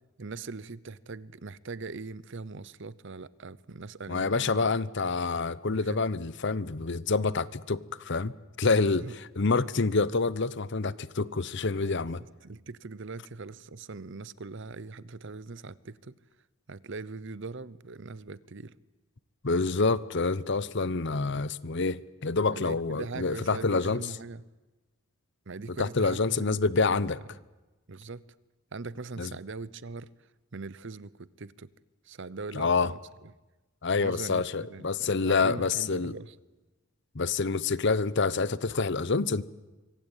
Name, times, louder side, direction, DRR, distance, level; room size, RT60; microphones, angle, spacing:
voice 1, 0.2-4.7 5.7-6.0 8.8-9.2 11.8-16.2 16.7-18.7 22.5-24.4 25.5-26.6 26.9-27.2 27.9-28.2 28.7-30.1 30.5-31.7 32.0-33.3 34.0-36.3, right 3 dB, 55° right, 0.8 m, -41 dB
voice 2, 4.1-8.3 8.6-9.1 9.4-12.2 19.4-24.0 25.8-27.2 29.2-29.3 32.5-32.9 33.8-36.2 37.1-39.4, left 4 dB, 55° left, 0.8 m, -27 dB
25.0 x 24.0 x 9.0 m
head